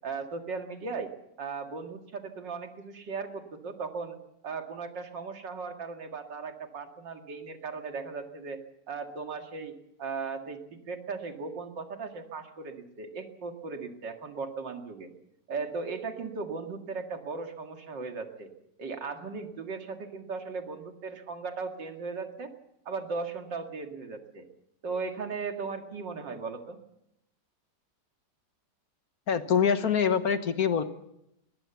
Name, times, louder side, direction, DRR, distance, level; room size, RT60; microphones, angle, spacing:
voice 1, 0.0-1.1 1.4-4.2 4.4-8.6 8.9-15.1 15.5-18.5 18.8-22.5 22.9-24.5 24.8-26.8, right 4 dB, 85° right, 4 dB, 2.8 m, -37 dB
voice 2, 29.3-30.8, left 7 dB, 60° left, 10 dB, 1.5 m, -25 dB
21.5 x 20.0 x 7.1 m, 0.82 s
omnidirectional pair, 1.9 m